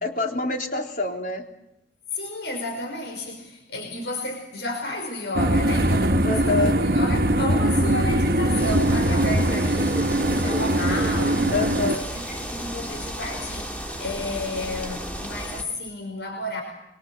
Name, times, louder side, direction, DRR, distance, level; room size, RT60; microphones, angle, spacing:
voice 1, 0.0-1.5 6.2-6.8 11.5-12.1, left 3 dB, 50° left, 2 dB, 3.7 m, -26 dB
voice 2, 2.1-16.6, left 1 dB, 80° left, 3 dB, 5.4 m, -32 dB
sound 1, 5.3-12.0, right 1 dB, 55° right, 1.1 m, -21 dB
sound 2, 8.6-15.6, equal, 10° left, 2.9 m, -33 dB
25.5 x 24.0 x 8.1 m, 0.85 s
head